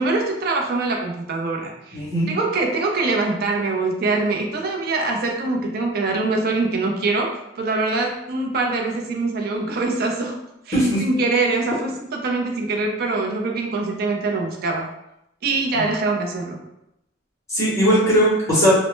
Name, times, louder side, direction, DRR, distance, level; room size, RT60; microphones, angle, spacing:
voice 1, 0.0-10.4 10.7-14.9 15.4-16.6, right 3 dB, 55° right, 1 dB, 0.4 m, -23 dB
voice 2, 1.9-2.3 10.7-11.0 15.7-15.8 17.5-18.7, equal, 15° left, -8 dB, 0.8 m, -18 dB
2.0 x 2.0 x 3.0 m, 0.84 s
head